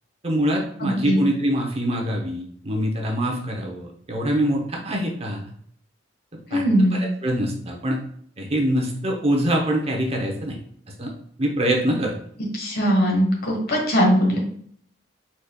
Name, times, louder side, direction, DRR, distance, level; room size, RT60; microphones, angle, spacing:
voice 1, 0.2-5.4 6.5-6.6 6.9-8.0 8.4-10.6 11.0-11.1 11.4-12.2, equal, 30° right, 0 dB, 0.9 m, -24 dB
voice 2, 0.8-1.2 6.5-7.0 12.5-14.4, equal, 50° left, -1 dB, 1.5 m, -20 dB
5.0 x 4.2 x 2.3 m, 0.62 s
head